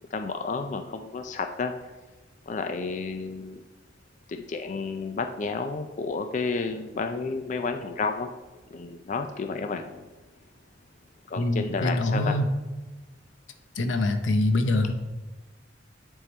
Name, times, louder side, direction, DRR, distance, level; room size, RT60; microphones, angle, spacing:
voice 1, 0.1-1.7 2.5-3.6 4.3-8.3 8.7-10.1 11.3-12.4, left 4 dB, 40° left, 7 dB, 0.4 m, -31 dB
voice 2, 11.4-12.5 13.8-14.9, left 2 dB, 85° left, 7 dB, 0.7 m, -24 dB
9.7 x 3.7 x 4.3 m, 1.2 s
head